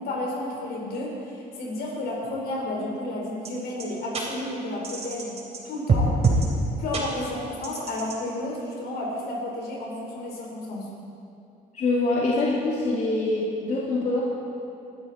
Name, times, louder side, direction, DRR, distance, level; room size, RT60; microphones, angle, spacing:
voice 1, 0.0-5.4 5.6-6.1 6.8-10.9, left 1 dB, 70° left, -2 dB, 4.6 m, -32 dB
sound 1, 3.4-3.5 3.8-3.9 4.1-4.2 4.8-5.6 5.9-6.5 6.9-7.0 7.6-8.1, right 4 dB, 40° right, 3.3 m, -24 dB
voice 2, 11.7-14.2, left 2 dB, 45° left, -5 dB, 2.6 m, -24 dB
21.0 x 12.0 x 4.4 m, 2.7 s
cardioid pair, 110°, 17 cm